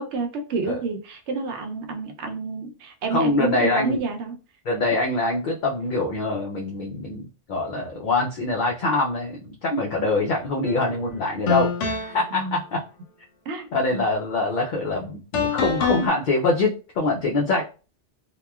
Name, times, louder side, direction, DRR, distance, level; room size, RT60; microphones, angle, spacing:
voice 1, 0.0-4.4 12.3-12.6 13.5-13.7 13.9-14.0, right 4 dB, 75° right, 0.9 m, -29 dB
voice 2, 3.1-4.0 4.7-12.8 13.7-17.6, left 2 dB, 60° left, 0.5 m, -24 dB
sound 1, 10.7-10.8 11.5-12.3 15.3-16.1, left 5 dB, 90° left, 0.9 m, -25 dB
3.0 x 2.1 x 2.2 m
omnidirectional pair, 1.2 m